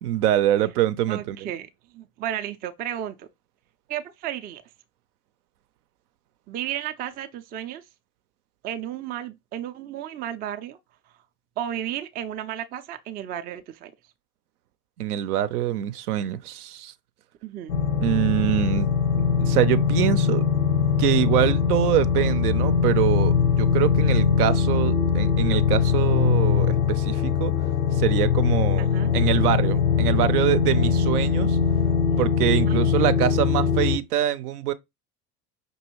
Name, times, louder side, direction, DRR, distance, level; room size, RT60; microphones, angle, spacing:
voice 1, 0.0-1.4 15.0-16.9 18.0-18.9 19.2-20.4 21.0-27.5 27.9-28.9 29.1-31.6 32.2-34.7, right 12 dB, 70° right, 0.6 m, -24 dB
voice 2, 1.1-3.3 3.9-4.6 6.5-7.8 8.6-10.8 11.6-13.9 17.4-17.8 28.8-29.1 32.7-32.8, right 11 dB, 20° right, 0.3 m, -33 dB
sound 1, 17.7-34.0, left 6 dB, 80° left, 0.6 m, -21 dB
5.3 x 2.7 x 2.9 m
figure-of-eight pair, 60°, 47 cm